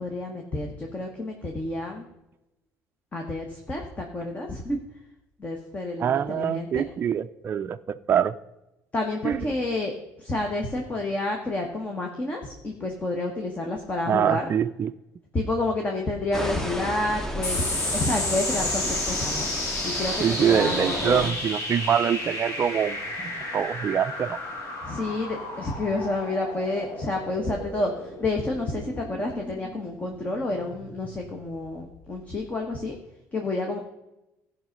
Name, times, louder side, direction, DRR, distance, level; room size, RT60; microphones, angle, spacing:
voice 1, 0.0-2.1 3.1-4.8 5.4-6.8 8.9-9.9 10.2-14.5 15.3-19.5 19.8-21.3 24.8-33.0 33.3-33.8, left 2 dB, 25° left, 2 dB, 1.3 m, -29 dB
voice 2, 6.0-8.4 9.2-9.5 14.1-14.9 20.2-24.4, right 8 dB, 35° right, 9 dB, 0.4 m, -25 dB
sound 1, 16.3-21.3, equal, 10° left, 1.0 m, -33 dB
sound 2, 17.4-32.2, left 1 dB, 55° left, 3.0 m, -32 dB
14.5 x 5.6 x 5.3 m, 0.95 s
cardioid pair, 125°, 6 cm